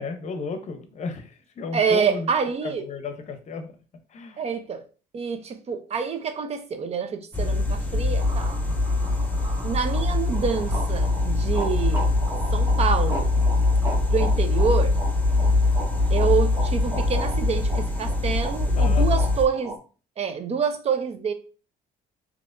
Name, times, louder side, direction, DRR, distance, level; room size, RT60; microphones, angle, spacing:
voice 1, 0.0-2.3 2.6-3.8 4.1-4.4 18.8-19.3, left 4 dB, 45° left, 0.7 m, -34 dB
voice 2, 1.7-2.9 4.4-4.8 5.1-8.5 9.6-12.1 12.5-13.3 14.1-15.0 16.1-19.7 20.2-21.3, right 6 dB, 40° right, 0.6 m, -27 dB
sound 1, 7.3-19.4, left 2 dB, 10° left, 0.7 m, -23 dB
sound 2, 8.2-19.8, right 2 dB, 20° right, 1.1 m, -37 dB
4.0 x 2.9 x 2.5 m
cardioid pair, 110°, 17 cm